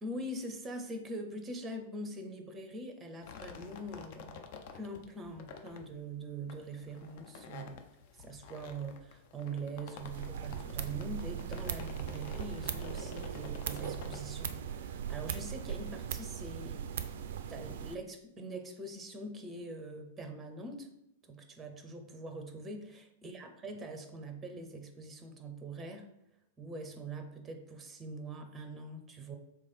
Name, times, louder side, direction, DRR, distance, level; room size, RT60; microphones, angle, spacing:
voice 1, 0.0-4.5 4.7-7.8 8.2-16.9 17.3-20.9 21.2-26.1 26.6-29.4, right 2 dB, 15° right, 6 dB, 0.6 m, -43 dB
sound 1, 3.2-15.9, left 5 dB, 45° left, 0.5 m, -50 dB
sound 2, 10.0-17.9, right 9 dB, 55° right, 0.3 m, -39 dB
3.5 x 3.1 x 4.3 m, 0.79 s
figure-of-eight pair, 100°, 0 cm